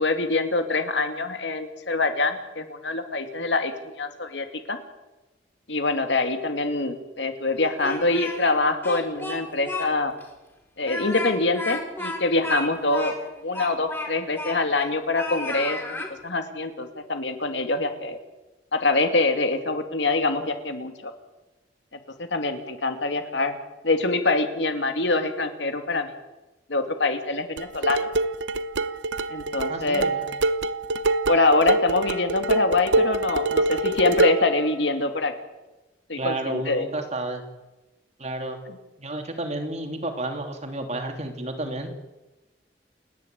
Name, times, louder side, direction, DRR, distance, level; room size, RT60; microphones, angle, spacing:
voice 1, 0.0-3.7 4.0-4.8 5.7-10.1 10.8-13.1 13.4-15.8 16.2-18.2 18.7-21.1 22.2-23.6 23.8-26.1 26.7-28.1 29.3-30.1 31.3-35.3 36.1-36.9, left 3 dB, 75° left, 7 dB, 2.5 m, -24 dB
Speech, 7.6-8.5 8.8-9.9 10.2-10.3 10.8-14.9 15.1-16.1, left 2 dB, 15° left, 3.9 m, -33 dB
sound 1, 27.6-34.5, right 2 dB, 85° right, 0.9 m, -25 dB
voice 2, 29.7-30.2 36.2-37.4 38.2-38.6 39.0-41.9, right 2 dB, 40° right, 5 dB, 2.9 m, -31 dB
29.0 x 10.5 x 9.0 m, 1.1 s
head